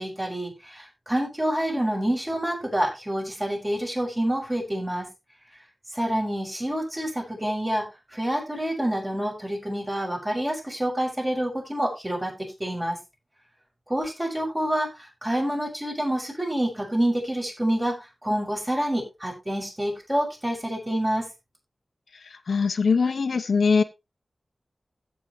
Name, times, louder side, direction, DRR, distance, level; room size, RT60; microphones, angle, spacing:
voice 1, 0.0-5.1 5.9-7.8 8.1-13.0 13.9-17.9 18.2-21.3, right 1 dB, 20° right, -1 dB, 7.1 m, -27 dB
voice 2, 22.5-23.8, left 5 dB, 90° left, 9 dB, 1.0 m, -21 dB
16.0 x 7.5 x 3.2 m, 0.26 s
wide cardioid pair, 100°, 0 cm